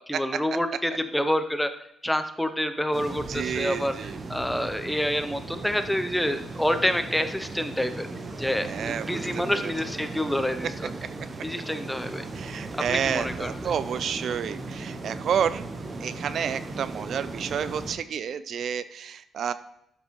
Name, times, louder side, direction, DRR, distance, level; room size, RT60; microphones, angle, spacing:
voice 1, 0.0-1.7 2.0-3.9 4.3-8.1 8.4-10.9 11.4-12.2 12.9-13.7, equal, 5° left, 9 dB, 0.6 m, -27 dB
sound 1, 2.9-18.0, right 3 dB, 30° right, 0.8 m, -37 dB
voice 2, 3.3-4.2 8.6-9.7 12.3-15.7 16.0-19.5, right 8 dB, 55° right, 13 dB, 0.4 m, -30 dB
12.5 x 5.8 x 3.1 m, 0.77 s
cardioid pair, 150°, 0 cm